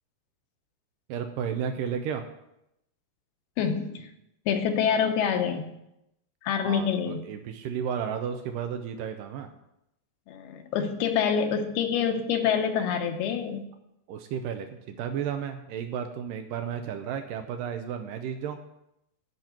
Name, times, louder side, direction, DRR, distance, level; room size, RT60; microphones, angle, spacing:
voice 1, 1.1-2.2 6.6-9.5 14.1-18.6, right 8 dB, 85° right, 6 dB, 1.9 m, -33 dB
voice 2, 3.6-4.1 4.5-5.7 6.4-7.2 10.3-13.6, left 7 dB, 75° left, 6 dB, 2.7 m, -26 dB
11.0 x 5.9 x 9.0 m, 0.84 s
omnidirectional pair, 4.8 m